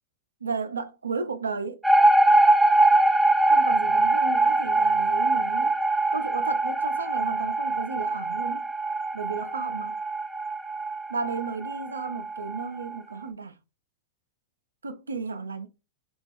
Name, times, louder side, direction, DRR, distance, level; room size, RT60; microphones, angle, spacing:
voice 1, 0.4-1.8 3.4-5.8 6.1-8.7 9.1-10.0 11.1-13.6 14.8-15.7, right 4 dB, 85° right, 0.4 m, -33 dB
sound 1, 1.8-13.0, right 2 dB, 5° right, 0.5 m, -23 dB
2.9 x 2.3 x 3.3 m
hypercardioid pair, 100°, 0 cm